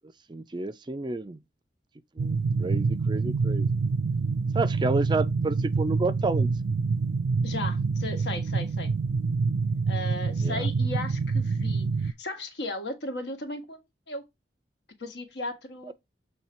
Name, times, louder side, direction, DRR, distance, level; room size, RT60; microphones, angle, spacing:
voice 1, 0.3-1.4 2.2-3.7 4.5-6.5 10.4-10.7 15.9-16.0, right 3 dB, 25° right, 0.4 m, -30 dB
sound 1, 2.2-12.1, right 4 dB, 85° right, 0.4 m, -26 dB
voice 2, 7.4-8.9 9.9-13.8 14.1-14.2 15.0-15.9, left 2 dB, 75° left, 1.6 m, -36 dB
7.3 x 3.3 x 4.3 m
head